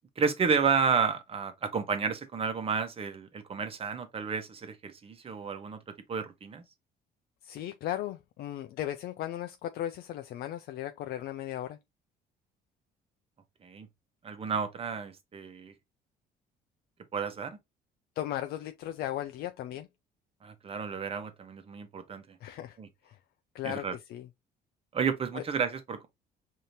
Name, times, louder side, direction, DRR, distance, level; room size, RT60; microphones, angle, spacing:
voice 1, 0.2-5.8 6.1-6.6 13.6-13.9 14.2-15.7 17.1-17.6 20.4-22.4 22.8-22.9 23.6-23.9 24.9-26.1, right 6 dB, 35° right, 1.0 m, -31 dB
voice 2, 7.4-11.8 18.2-19.9 22.4-22.8 23.1-23.2 23.5-24.3 25.3-25.4, left 12 dB, 70° left, 0.4 m, -36 dB
5.0 x 2.8 x 2.8 m
cardioid pair, 110°, 17 cm